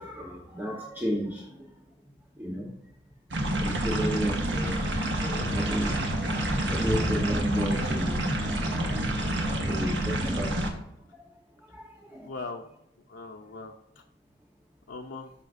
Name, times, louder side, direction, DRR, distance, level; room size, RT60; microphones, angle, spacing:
voice 1, 0.0-1.7 2.4-2.7 3.6-6.1 6.5-8.2 8.9-10.7 11.1-11.2 11.7-12.3, equal, 10° right, -3 dB, 1.0 m, -33 dB
sound 1, 3.3-10.7, right 1 dB, 70° right, 1.3 m, -28 dB
sound 2, 4.4-10.0, equal, 50° right, 3.0 m, -39 dB
voice 2, 12.2-12.6 13.1-14.0 14.9-15.3, left 3 dB, 80° left, 1 dB, 0.6 m, -40 dB
12.5 x 4.9 x 2.6 m, 0.81 s
head